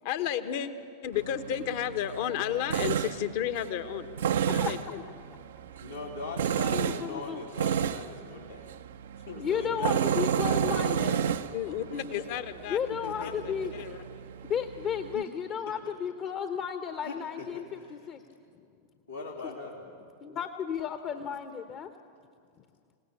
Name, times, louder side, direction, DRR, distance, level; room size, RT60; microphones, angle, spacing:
voice 1, 0.0-0.7 1.0-4.1 4.5-5.0 11.5-12.8 13.2-13.3 13.7-14.0, left 10 dB, 50° left, 10 dB, 1.2 m, -32 dB
Tools, 1.1-15.2, right 8 dB, 60° right, 0.6 m, -32 dB
voice 2, 5.8-8.7 9.2-11.3 11.6-12.2 12.9-13.8 15.1-15.4 15.7-15.8 17.0-18.1 19.1-19.8, left 3 dB, 85° left, -6 dB, 3.2 m, -40 dB
voice 3, 6.7-7.4 9.4-11.1 12.7-13.7 14.4-18.2 19.4-19.5 20.2-21.9, left 7 dB, 30° left, 8 dB, 1.0 m, -33 dB
27.0 x 18.0 x 8.6 m, 2.3 s
figure-of-eight pair, 90°, 0 cm